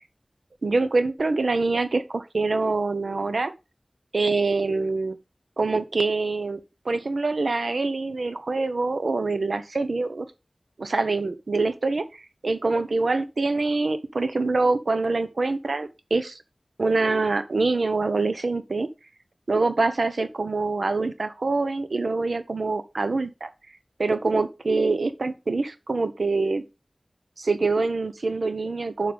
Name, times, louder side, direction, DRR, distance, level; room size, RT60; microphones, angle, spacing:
voice 1, 0.6-3.5 4.1-5.2 5.6-6.6 6.8-10.3 10.8-12.1 12.4-16.4 16.8-18.9 19.5-23.5 24.0-26.6 27.4-29.1, right 3 dB, 90° right, 1.2 m, -25 dB
10.0 x 6.8 x 3.6 m
wide cardioid pair, 65°, 0 cm